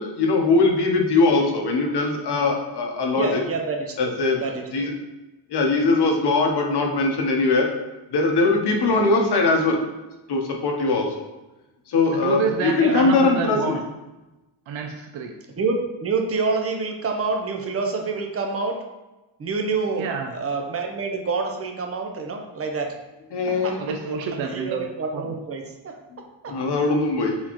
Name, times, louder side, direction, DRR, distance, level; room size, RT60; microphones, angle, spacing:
voice 1, 0.0-3.4 4.0-4.4 4.7-4.9 5.5-7.7 8.1-9.8 10.3-11.1 11.9-13.7 23.3-23.8 26.5-27.4, left 3 dB, 55° left, 1 dB, 0.9 m, -21 dB
voice 2, 3.2-4.9 5.7-5.8 8.8-9.1 12.7-13.0 15.6-18.8 19.4-22.9 23.5-23.8 24.3-26.0 26.4-26.6, right 4 dB, 30° right, 3 dB, 0.6 m, -27 dB
voice 3, 12.1-13.8 14.7-15.3 19.9-20.3 23.8-24.8 25.1-25.4, right 5 dB, 75° right, 3 dB, 0.6 m, -28 dB
4.3 x 3.7 x 2.9 m, 1.1 s
cardioid pair, 115°, 48 cm